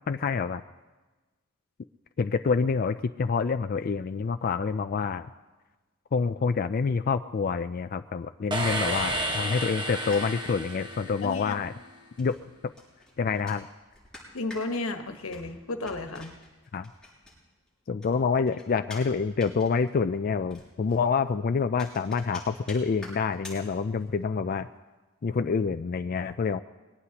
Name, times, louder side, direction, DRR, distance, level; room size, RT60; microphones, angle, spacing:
voice 1, 0.1-0.6 2.2-5.3 6.1-11.7 12.2-12.4 13.2-13.7 16.7-16.9 17.9-24.7 25.2-26.6, left 5 dB, 45° left, 9 dB, 0.4 m, -27 dB
sound 1, 8.5-11.7, right 1 dB, 25° right, 1.3 m, -32 dB
sound 2, 8.9-17.7 18.0-24.2, left 1 dB, 5° left, 6.7 m, -49 dB
voice 2, 11.2-11.6 14.3-16.4, left 2 dB, 90° left, 6 dB, 1.3 m, -33 dB
22.5 x 17.5 x 2.9 m, 1.2 s
head